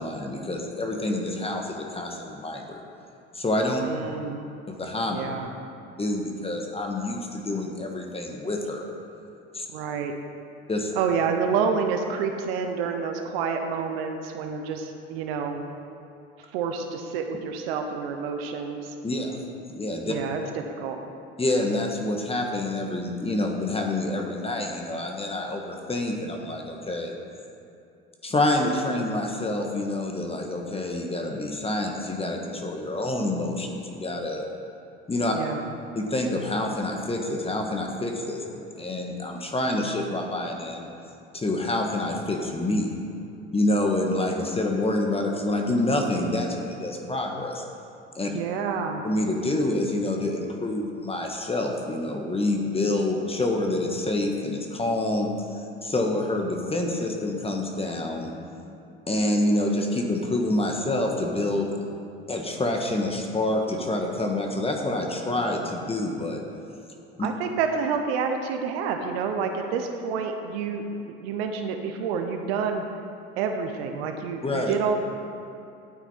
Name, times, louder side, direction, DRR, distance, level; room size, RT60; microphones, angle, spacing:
voice 1, 0.0-2.8 3.3-3.8 4.7-5.2 6.0-8.9 9.5-9.6 10.7-10.9 19.0-19.4 19.7-20.1 21.4-27.1 28.2-34.4 35.1-35.3 35.9-40.9 41.3-42.9 43.5-47.6 48.1-48.3 49.0-58.3 59.1-61.7 62.3-66.4 67.2-67.3 74.4-74.7, left 1 dB, 20° left, 2 dB, 1.5 m, -27 dB
voice 2, 3.8-4.4 5.1-5.5 9.7-10.1 11.0-15.6 16.5-18.9 20.0-21.0 35.3-35.6 48.3-49.0 67.2-72.8 73.4-75.0, right 6 dB, 70° right, 5 dB, 1.0 m, -28 dB
12.5 x 9.1 x 4.3 m, 2.7 s
hypercardioid pair, 70°, 31 cm